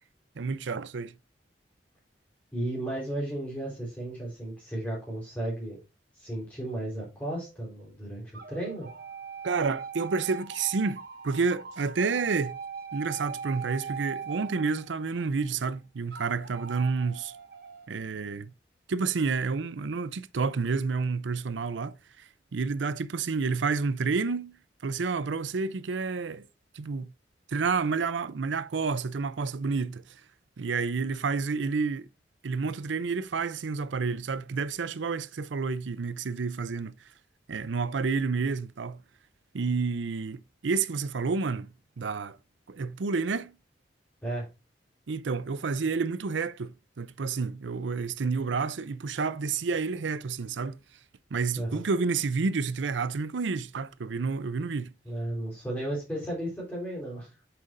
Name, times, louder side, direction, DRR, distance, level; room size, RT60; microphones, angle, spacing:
voice 1, 0.4-1.1 9.4-12.6 12.9-17.3 17.9-18.5 18.9-24.5 24.8-26.5 26.7-27.1 27.5-30.2 30.6-32.1 32.4-36.9 37.5-39.0 39.5-42.4 42.7-43.5 45.1-50.8 51.3-54.9, right 4 dB, 85° right, 0.5 m, -30 dB
voice 2, 2.5-5.8 6.2-8.9 44.2-44.5 51.6-51.8 55.0-57.3, right 1 dB, 10° left, 3.8 m, -34 dB
sound 1, 7.4-7.8 8.3-15.4 16.1-17.9, right 6 dB, 55° right, 1.5 m, -41 dB
8.8 x 6.8 x 2.6 m
head